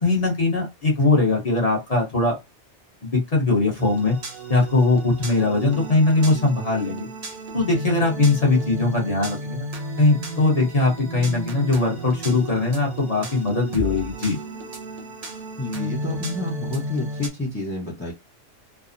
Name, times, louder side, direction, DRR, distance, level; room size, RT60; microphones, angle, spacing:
voice 1, 0.0-2.4 3.0-4.2 4.5-7.1 7.5-9.7 10.0-14.4, left 3 dB, 35° left, -1 dB, 0.9 m, -20 dB
sound 1, 3.8-17.3, right 2 dB, 40° right, 0.7 m, -33 dB
voice 2, 15.6-18.1, left 2 dB, 15° left, -5 dB, 0.6 m, -29 dB
3.3 x 2.0 x 2.5 m, 0.24 s
omnidirectional pair, 1.3 m